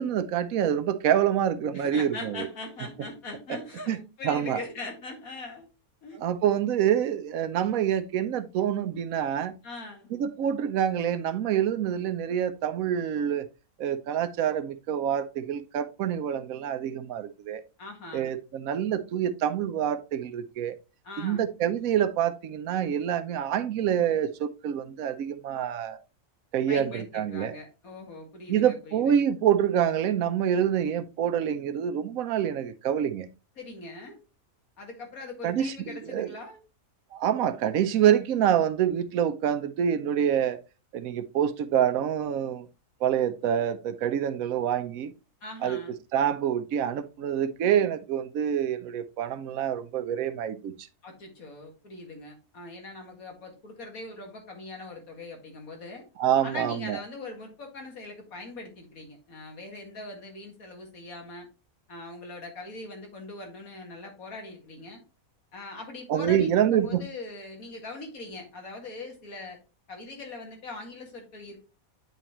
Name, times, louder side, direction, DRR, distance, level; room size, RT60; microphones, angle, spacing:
voice 1, 0.0-2.5 3.9-4.0 4.2-4.6 6.2-9.5 10.1-13.5 13.8-17.6 18.1-20.7 21.2-26.0 26.5-27.6 28.5-33.3 35.4-36.3 37.1-40.6 40.9-42.7 43.0-45.1 45.6-45.8 46.1-50.9 56.2-57.0 66.1-67.0, right 9 dB, 75° right, 1.0 m, -26 dB
voice 2, 1.7-5.6 6.0-6.2 9.6-10.1 17.8-18.3 21.0-21.5 26.7-29.2 33.6-34.2 34.8-36.6 45.4-46.0 51.0-56.1 56.4-61.5 61.9-65.0 65.5-69.6 69.9-71.6, left 2 dB, 80° left, 2.2 m, -41 dB
9.1 x 4.1 x 2.9 m
omnidirectional pair, 1.5 m